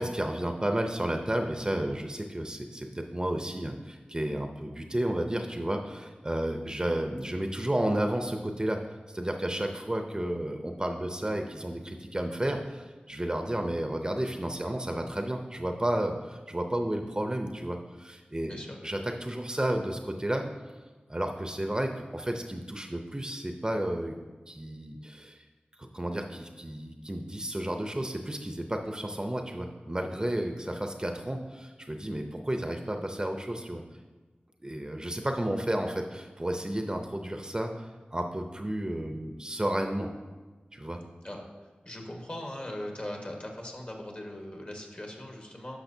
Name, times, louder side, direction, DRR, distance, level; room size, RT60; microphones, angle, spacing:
voice 1, 0.0-8.8 9.1-20.5 21.1-24.2 24.5-25.4 25.9-33.8 34.6-40.1 40.7-41.0, right 1 dB, 25° right, 4 dB, 0.6 m, -32 dB
voice 2, 18.4-18.8 41.2-41.4 41.8-45.8, left 1 dB, 40° left, 1 dB, 1.4 m, -39 dB
10.5 x 6.2 x 2.7 m, 1.3 s
wide cardioid pair, 55°, 3 cm